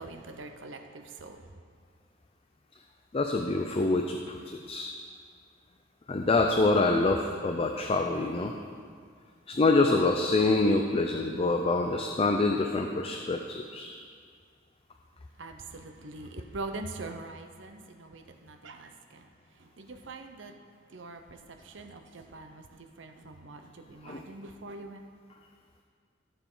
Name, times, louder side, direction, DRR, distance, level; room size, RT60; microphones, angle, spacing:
voice 1, 0.0-1.5 15.4-19.3 19.6-20.6 20.9-25.0, right 2 dB, 70° right, 6 dB, 0.8 m, -43 dB
voice 2, 3.1-4.9 6.1-8.5 9.5-13.9 24.0-24.2, left 3 dB, 30° left, 4 dB, 0.5 m, -26 dB
16.0 x 7.0 x 3.9 m, 2.1 s
head